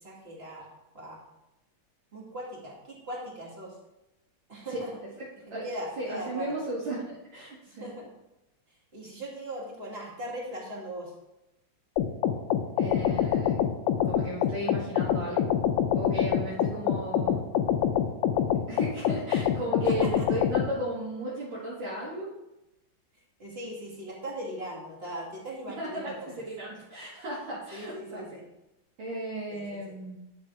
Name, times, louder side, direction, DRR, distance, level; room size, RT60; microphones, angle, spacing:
voice 1, 0.0-0.7 0.9-1.2 2.1-3.7 4.5-4.9 5.6-6.5 7.7-8.1 8.9-11.1 19.7-20.3 23.4-26.3 27.7-28.5 29.5-29.8, equal, 30° right, -4 dB, 2.3 m, -39 dB
voice 2, 6.0-7.9 12.8-13.6 14.1-15.5 15.9-17.4 18.7-22.3 25.7-28.4 29.0-30.2, right 1 dB, 70° right, -8 dB, 2.5 m, -35 dB
sound 1, 12.0-20.7, left 9 dB, 75° left, 1.3 m, -26 dB
11.0 x 4.3 x 4.7 m, 0.92 s
omnidirectional pair, 2.2 m